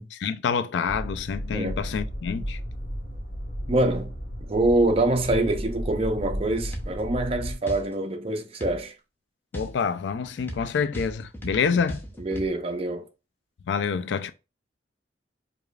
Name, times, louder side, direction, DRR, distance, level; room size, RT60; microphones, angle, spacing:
voice 1, 0.1-2.6 9.5-12.0 13.7-14.3, left 6 dB, 85° left, 0.4 m, -27 dB
sound 1, 0.9-7.5, equal, 55° left, 1.2 m, -34 dB
voice 2, 3.7-4.2 4.5-8.9 12.2-13.1, right 2 dB, 35° right, 0.5 m, -25 dB
sound 2, 6.7-7.0 7.7-7.9 8.6-8.8 9.5-12.5, equal, 10° left, 0.6 m, -37 dB
4.8 x 2.4 x 2.3 m
head